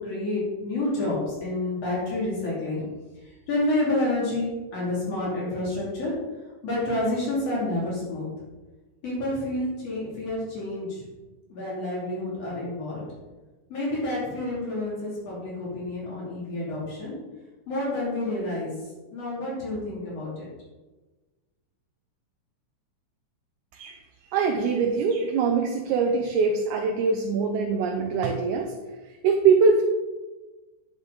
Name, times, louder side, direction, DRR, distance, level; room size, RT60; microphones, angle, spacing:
voice 1, 0.0-2.9 3.5-6.1 6.6-8.3 9.0-11.0 11.5-13.0 13.7-17.1 17.7-18.7 19.1-20.5, left 1 dB, 55° left, -6 dB, 3.7 m, -29 dB
voice 2, 24.3-28.7 29.2-29.8, right 5 dB, 80° right, 3 dB, 2.2 m, -23 dB
10.5 x 6.6 x 4.0 m, 1.2 s
omnidirectional pair, 3.6 m